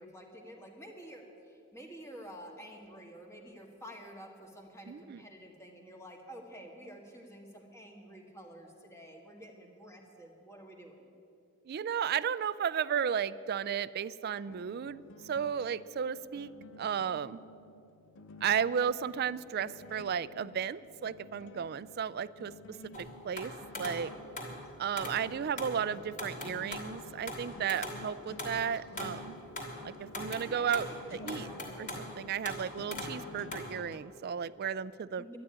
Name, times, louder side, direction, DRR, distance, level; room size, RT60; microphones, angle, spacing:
voice 1, 0.0-11.1 23.8-24.2 30.5-32.0 35.1-35.4, equal, 15° left, 2 dB, 1.7 m, -50 dB
voice 2, 4.9-5.2 11.7-17.4 18.4-22.5 23.0-23.5 23.8-24.1 24.8-29.4 29.8-30.9 31.2-31.5 31.8-31.9 32.2-35.3, right 7 dB, 50° right, 18 dB, 0.3 m, -34 dB
sound 1, 14.5-34.0, left 3 dB, 60° left, 0.6 m, -52 dB
sound 2, 22.9-24.6 25.0-25.2 25.6-25.8 26.2-26.9 27.3-29.2 29.6-29.9 30.1-30.9 31.3-32.1 32.4-32.7 32.9-33.2 33.5-33.6, left 1 dB, 40° left, 2.7 m, -40 dB
12.5 x 9.9 x 9.6 m, 2.7 s
head